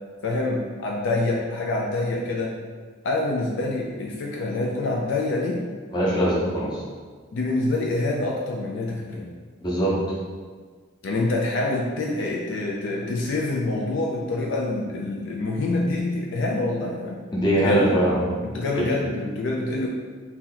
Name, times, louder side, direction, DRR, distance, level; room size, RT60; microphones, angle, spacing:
voice 1, 0.2-2.5 3.0-5.6 7.3-9.3 11.0-17.2 17.5-17.9 18.4-19.9, left 2 dB, 65° left, -2 dB, 0.4 m, -26 dB
voice 2, 5.9-6.8 9.6-9.9 17.3-18.2 18.7-18.8, right 1 dB, 20° left, -6 dB, 0.9 m, -21 dB
2.9 x 2.8 x 3.8 m, 1.5 s
head